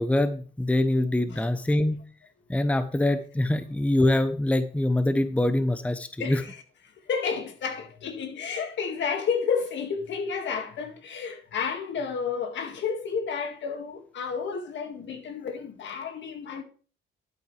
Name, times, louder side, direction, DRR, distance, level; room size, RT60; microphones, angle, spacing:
voice 1, 0.0-2.0 2.5-6.4, left 1 dB, 5° left, 0.8 m, -24 dB
voice 2, 6.2-6.6 7.0-16.6, left 6 dB, 65° left, 2.0 m, -31 dB
12.0 x 8.8 x 3.3 m
cardioid pair, 90°, 20 cm